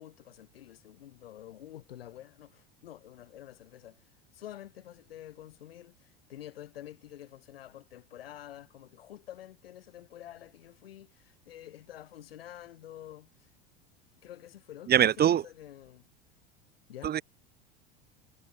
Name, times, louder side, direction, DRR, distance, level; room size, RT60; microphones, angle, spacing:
voice 1, 0.0-4.0 4.3-13.5 14.2-16.1 16.9-17.2, left 12 dB, 80° left, 7.9 m, -48 dB
voice 2, 14.9-15.4 17.0-17.2, right 10 dB, 35° right, 1.3 m, -23 dB
hypercardioid pair, 85°, 29 cm